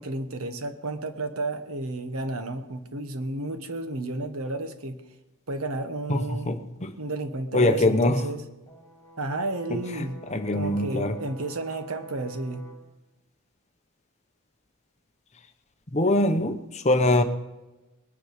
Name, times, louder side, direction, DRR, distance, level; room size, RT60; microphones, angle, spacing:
voice 1, 0.0-5.0 5.5-6.5 7.0-8.4 9.2-10.2 10.5-12.6, right 2 dB, 75° right, 8 dB, 1.2 m, -32 dB
voice 2, 6.1-6.9 7.5-8.3 9.7-11.2 15.9-17.2, left 1 dB, 30° left, 8 dB, 0.8 m, -23 dB
Brass instrument, 8.7-12.9, right 4 dB, 15° left, 1.7 m, -47 dB
20.5 x 9.4 x 5.1 m, 1.0 s
head